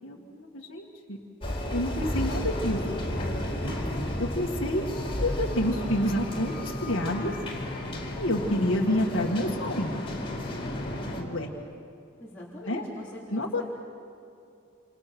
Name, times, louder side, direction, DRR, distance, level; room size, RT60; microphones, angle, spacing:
voice 1, 0.0-1.2 1.7-3.1 4.2-4.9 5.2-7.4 8.1-9.9 11.2-11.5 12.7-12.8 13.3-13.6, left 1 dB, 65° left, -2 dB, 1.9 m, -28 dB
sound 1, 1.4-11.2, left 1 dB, 25° left, 4.2 m, -32 dB
voice 2, 12.2-13.6, equal, 10° left, -8 dB, 3.6 m, -42 dB
28.5 x 28.0 x 6.1 m, 2.7 s
head